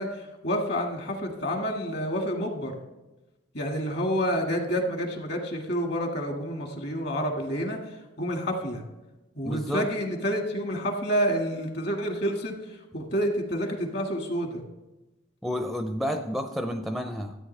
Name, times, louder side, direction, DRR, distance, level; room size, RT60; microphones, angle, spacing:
voice 1, 0.0-2.7 3.5-8.8 9.4-14.6, equal, 55° left, 2 dB, 1.8 m, -29 dB
voice 2, 9.4-9.9 15.4-17.4, equal, ahead, 5 dB, 0.4 m, -30 dB
13.0 x 8.8 x 3.3 m, 1.0 s
head